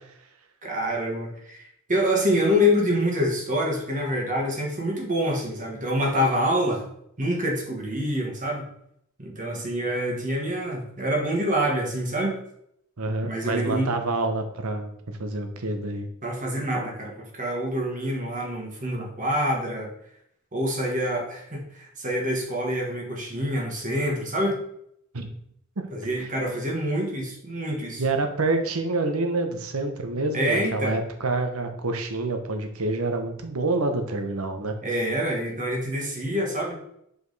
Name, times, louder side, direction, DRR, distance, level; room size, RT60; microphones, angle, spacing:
voice 1, 0.6-1.6 1.9-6.9 7.2-8.7 9.2-12.4 13.2-13.9 16.2-19.9 20.5-24.6 25.9-28.0 30.3-31.0 34.8-36.8, equal, 35° right, 0 dB, 1.5 m, -26 dB
voice 2, 13.0-14.9 15.2-16.1 25.1-25.3 25.8-25.9 28.0-34.7, right 2 dB, 75° right, 6 dB, 1.0 m, -27 dB
5.2 x 4.9 x 4.0 m, 0.72 s
head